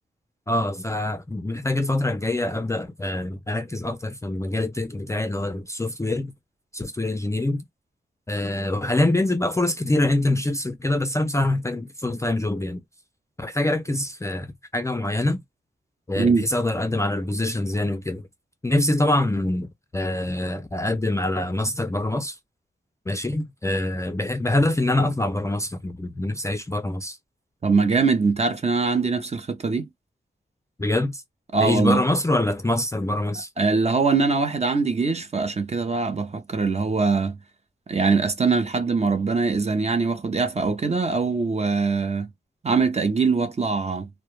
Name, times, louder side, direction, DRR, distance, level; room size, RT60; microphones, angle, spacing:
voice 1, 0.5-6.3 6.7-7.6 8.3-12.8 13.4-15.4 16.1-18.2 18.6-22.4 23.1-27.2 30.8-31.2 31.6-33.5, left 1 dB, 15° left, 0.4 m, -25 dB
voice 2, 27.6-29.9 31.5-32.0 33.6-37.4 37.9-42.3 42.6-44.1, right 4 dB, 35° right, 0.6 m, -22 dB
2.2 x 2.1 x 3.0 m
wide cardioid pair, 80°, 18 cm